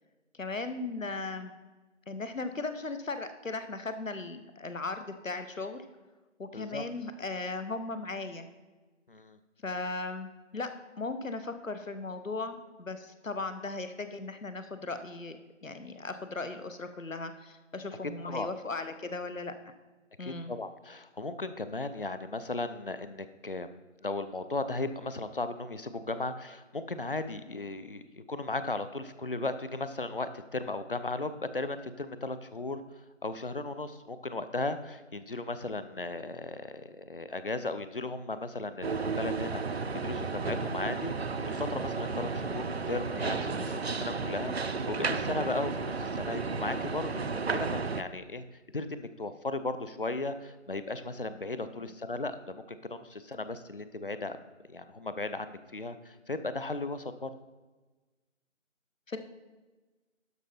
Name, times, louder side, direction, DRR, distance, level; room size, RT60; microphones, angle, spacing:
voice 1, 0.3-1.5 2.1-5.8 6.4-8.5 9.6-10.7 11.0-19.7 20.2-20.5 51.8-51.9 59.1-59.2, left 3 dB, 85° left, 9 dB, 1.1 m, -37 dB
voice 2, 6.5-6.8 9.1-9.4 18.2-18.5 20.2-23.7 24.0-41.1 41.4-47.2 47.5-48.4 48.7-54.4 54.7-57.3, left 2 dB, 45° left, 11 dB, 0.5 m, -36 dB
sound 1, 38.8-48.0, right 4 dB, 55° right, 0.5 m, -33 dB
12.0 x 5.2 x 4.3 m, 1.2 s
figure-of-eight pair, 155°, 38 cm